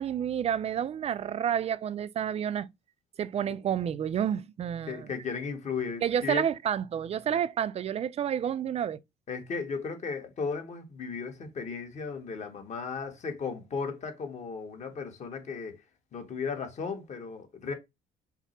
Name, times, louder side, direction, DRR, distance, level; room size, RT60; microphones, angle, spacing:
voice 1, 0.0-2.7 3.2-5.1 6.0-9.0, right 9 dB, 40° right, 0.4 m, -30 dB
voice 2, 4.9-6.4 7.3-7.4 9.3-15.8 16.1-17.7, left 5 dB, 45° left, 1.3 m, -35 dB
5.8 x 2.0 x 4.3 m
cardioid pair, 110°, 17 cm